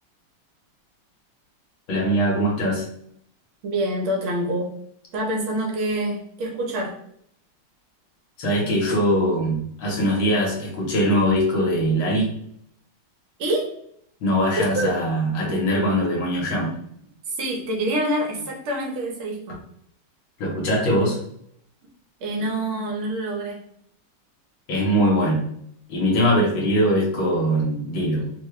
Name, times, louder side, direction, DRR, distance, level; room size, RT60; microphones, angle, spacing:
voice 1, 1.9-2.9 8.4-12.3 14.2-16.8 20.4-21.2 24.7-25.4 25.9-28.3, equal, 70° left, -2 dB, 1.9 m, -21 dB
voice 2, 3.6-4.7 5.1-7.0 13.4-13.8 14.5-14.9 17.3-19.6 22.2-23.7, right 1 dB, 75° right, -1 dB, 1.8 m, -26 dB
4.2 x 2.3 x 3.1 m, 0.69 s
omnidirectional pair, 2.3 m